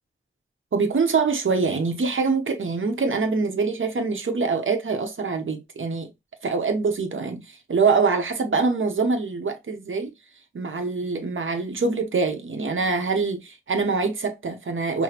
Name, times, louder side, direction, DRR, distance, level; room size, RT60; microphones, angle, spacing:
voice 1, 0.7-6.1 6.4-10.1 10.5-15.0, right 4 dB, 80° right, 0.9 m, -24 dB
5.9 x 2.1 x 2.9 m
wide cardioid pair, 50°, 20 cm